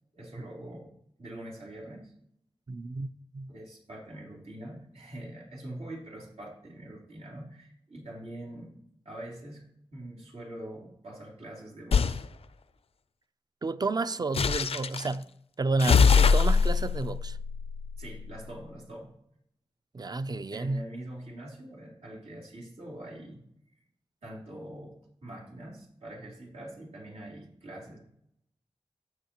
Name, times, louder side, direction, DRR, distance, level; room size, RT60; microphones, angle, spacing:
voice 1, 0.1-0.9 1.2-2.1 3.5-8.7 9.0-9.6 9.9-12.2 18.0-19.1 20.5-23.4 24.2-28.0, right 1 dB, 90° right, 3.4 m, -44 dB
voice 2, 2.7-3.5 13.6-15.3 15.6-17.4 19.9-20.8, right 3 dB, 40° right, 0.5 m, -31 dB
sound 1, 11.9-12.2 14.3-15.1 15.8-18.4, left 5 dB, 75° left, 0.4 m, -23 dB
14.5 x 6.4 x 3.0 m
wide cardioid pair, 70°, 10 cm